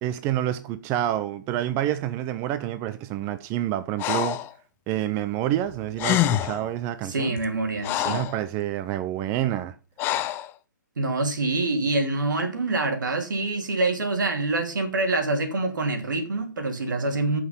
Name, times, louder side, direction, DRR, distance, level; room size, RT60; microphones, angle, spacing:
voice 1, 0.0-4.4 4.9-7.4 8.0-9.7, right 12 dB, 25° right, 0.6 m, -28 dB
Breathing, 4.0-4.5 5.7-5.8 6.0-6.7 7.4-8.4 10.0-10.5, left 13 dB, 20° left, 0.6 m, -26 dB
voice 2, 7.0-8.2 11.0-17.4, right 2 dB, 75° right, 3.1 m, -26 dB
13.5 x 6.0 x 5.6 m
hypercardioid pair, 140°, 10 cm